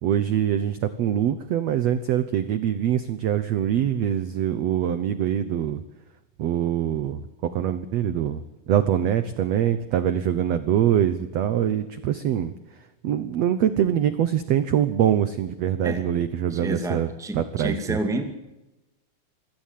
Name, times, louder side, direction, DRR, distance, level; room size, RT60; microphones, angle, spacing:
voice 1, 0.0-5.8 6.4-7.2 7.5-12.5 13.0-17.1 17.3-18.0, right 10 dB, 70° right, 12 dB, 1.6 m, -24 dB
voice 2, 16.5-18.2, right 1 dB, ahead, 7 dB, 1.4 m, -29 dB
26.0 x 17.5 x 7.5 m, 1.0 s
omnidirectional pair, 4.2 m